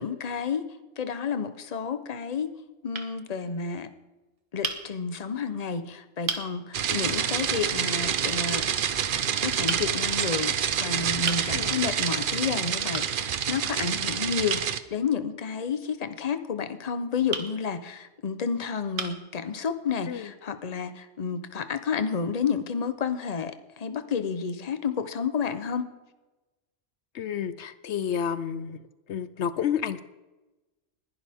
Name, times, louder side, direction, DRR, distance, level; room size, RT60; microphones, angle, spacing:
voice 1, 0.0-2.5 2.8-3.9 4.5-8.7 9.4-25.9, left 6 dB, 35° left, 10 dB, 0.9 m, -30 dB
sound 1, 1.2-1.8 2.5-2.6 2.9-3.1 4.6-4.8 5.7-5.8 6.3-6.5 7.9-8.1 9.7-9.9 11.3-11.5 12.9-13.1 14.5-14.7 17.3-17.5 18.3-18.4 19.0-19.3, right 5 dB, 75° right, 1.6 m, -32 dB
sound 2, 6.7-14.8, right 8 dB, 55° right, 0.8 m, -27 dB
voice 2, 27.1-28.8 29.1-30.0, left 8 dB, 70° left, 14 dB, 0.9 m, -30 dB
20.5 x 11.5 x 3.6 m, 1.1 s
omnidirectional pair, 1.2 m